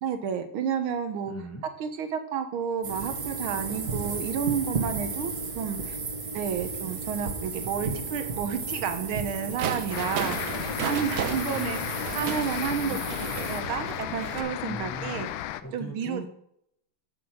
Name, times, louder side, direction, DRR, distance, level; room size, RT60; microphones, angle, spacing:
voice 1, 0.0-1.3 1.8-6.0 6.3-13.0 13.5-15.3 15.7-16.2, right 7 dB, 80° right, 8 dB, 1.7 m, -31 dB
voice 2, 1.2-1.6 11.2-11.9 12.8-13.0 14.6-15.3 15.6-16.3, right 1 dB, 10° left, 1 dB, 1.1 m, -40 dB
sound 1, 2.8-13.6, right 4 dB, 45° right, 1.9 m, -34 dB
sound 2, 9.6-14.4, right 8 dB, 65° right, 0.9 m, -35 dB
sound 3, 9.9-15.6, left 13 dB, 75° left, 1.3 m, -34 dB
8.9 x 6.3 x 6.1 m, 0.73 s
omnidirectional pair, 2.3 m